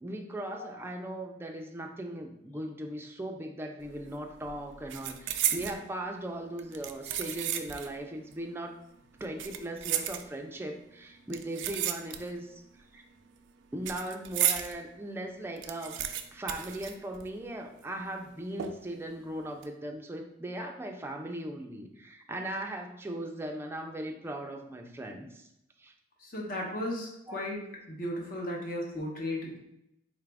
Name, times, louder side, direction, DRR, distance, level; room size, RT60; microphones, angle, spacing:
voice 1, 0.0-8.8 9.2-12.6 12.9-13.0 13.7-16.0 16.3-25.5 25.8-25.9 27.3-27.4, right 1 dB, 15° right, 3 dB, 0.4 m, -38 dB
sound 1, 3.8-4.1 4.4-5.8 6.6-8.0 8.3-8.4 9.2-10.6 11.3-12.5 12.8-14.7 15.1-15.2 15.4-17.5 17.8-17.9 18.6-19.0 19.4-19.7, right 10 dB, 85° right, 0.3 m, -33 dB
voice 2, 26.2-27.6 27.9-29.6, left 1 dB, 50° left, -1 dB, 0.9 m, -35 dB
3.9 x 2.4 x 3.3 m, 0.80 s
head